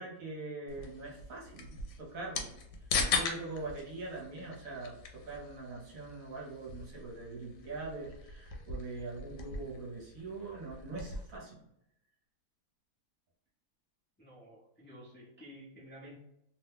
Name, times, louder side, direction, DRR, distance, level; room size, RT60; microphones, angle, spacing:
voice 1, 0.0-2.5 3.1-11.6, right 3 dB, 60° right, -3 dB, 1.2 m, -43 dB
sound 1, 0.7-11.4, left 4 dB, 75° left, 1.1 m, -40 dB
voice 2, 14.2-16.2, equal, 15° left, -7 dB, 0.4 m, -52 dB
2.8 x 2.2 x 3.4 m, 0.78 s
omnidirectional pair, 1.7 m